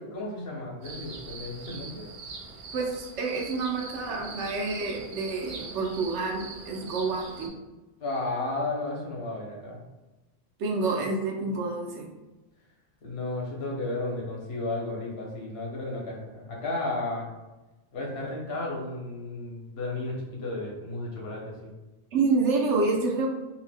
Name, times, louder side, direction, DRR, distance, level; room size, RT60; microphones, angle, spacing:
voice 1, 0.0-2.1 8.0-9.8 13.0-17.3 17.9-21.7, left 2 dB, 65° left, -2 dB, 1.0 m, -33 dB
sound 1, 0.8-7.5, right 4 dB, 60° right, 0.5 m, -42 dB
voice 2, 2.7-7.5 10.6-12.1 22.1-23.3, right 3 dB, 90° right, 0 dB, 0.9 m, -28 dB
2.7 x 2.1 x 3.3 m, 1.1 s
omnidirectional pair, 1.2 m